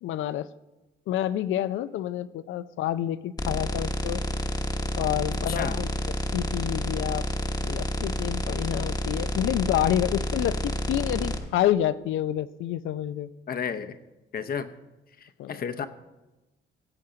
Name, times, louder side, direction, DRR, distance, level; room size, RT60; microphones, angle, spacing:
voice 1, 0.0-0.5 1.1-4.2 5.0-5.9 6.3-7.3 7.6-13.3 15.4-15.7, left 12 dB, 80° left, 15 dB, 0.5 m, -28 dB
sound 1, 3.4-11.4, equal, 20° left, 1.0 m, -29 dB
voice 2, 5.5-5.8 13.5-14.0 14.3-14.7 15.5-15.9, left 7 dB, 50° left, 9 dB, 0.8 m, -31 dB
17.5 x 7.8 x 3.8 m, 1.0 s
cardioid pair, 90°, 20 cm